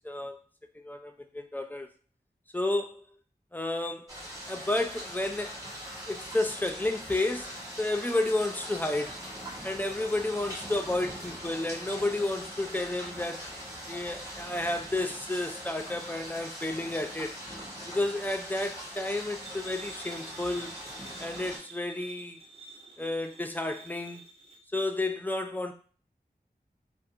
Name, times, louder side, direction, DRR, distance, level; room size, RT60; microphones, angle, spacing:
voice 1, 0.0-0.4 0.8-1.9 2.5-3.0 3.5-4.2 4.5-5.6 6.1-9.2 9.6-13.5 13.9-17.4 17.9-20.7 21.2-22.4 23.0-24.2 24.7-25.7, left 2 dB, 10° left, 0.3 m, -31 dB
sound 1, 4.1-21.6, equal, 20° right, 1.2 m, -41 dB
sound 2, 19.4-24.6, right 3 dB, 35° right, 0.7 m, -49 dB
2.6 x 2.1 x 2.4 m
wide cardioid pair, 65°, 17 cm